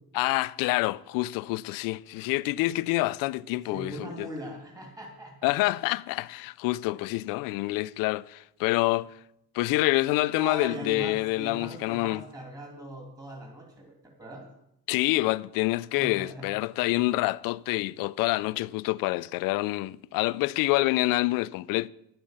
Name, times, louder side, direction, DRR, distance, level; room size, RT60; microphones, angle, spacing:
voice 1, 0.1-4.3 5.4-9.1 9.5-12.2 14.9-21.9, left 19 dB, 80° left, 0.5 m, -27 dB
voice 2, 3.7-5.5 6.9-7.0 10.3-14.5 15.9-16.5, right 1 dB, 10° right, 2.8 m, -40 dB
11.0 x 8.9 x 6.5 m
cardioid pair, 120°, 33 cm